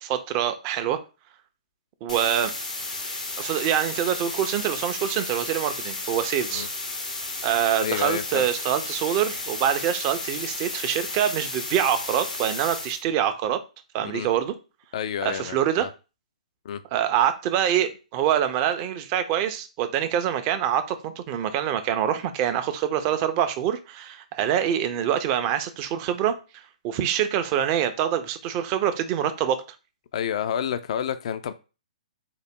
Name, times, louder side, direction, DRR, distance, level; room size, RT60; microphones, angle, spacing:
voice 1, 0.0-1.0 2.0-2.5 3.4-6.7 7.4-13.6 13.9-14.5 15.2-15.9 16.9-26.4 26.8-29.6, right 10 dB, 35° right, 0.5 m, -25 dB
sound 1, 2.1-13.0, left 2 dB, 90° left, 0.9 m, -33 dB
voice 2, 7.8-8.5 14.1-14.3 14.9-15.9 16.6-16.8 30.1-31.5, left 9 dB, 55° left, 0.3 m, -29 dB
3.8 x 2.0 x 3.6 m
hypercardioid pair, 130°, 4 cm